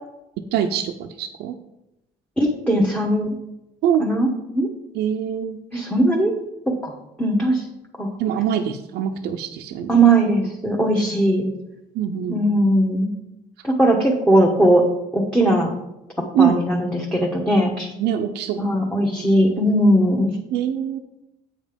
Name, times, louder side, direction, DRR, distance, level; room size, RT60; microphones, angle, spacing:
voice 1, 0.4-1.5 3.8-4.1 4.9-5.6 8.2-10.0 10.4-10.5 11.0-11.1 11.9-12.5 16.3-16.6 18.0-19.3 20.5-21.0, right 9 dB, 80° right, 4 dB, 0.6 m, -24 dB
voice 2, 2.4-3.3 4.0-4.3 4.5-4.7 5.7-6.3 6.7-6.9 7.2-7.6 8.0-8.1 9.9-11.5 12.3-13.1 13.6-14.8 15.1-15.7 16.4-17.9 18.6-20.3, right 1 dB, 5° left, -1 dB, 1.1 m, -19 dB
8.0 x 5.2 x 5.1 m, 0.90 s
cardioid pair, 110°, 17 cm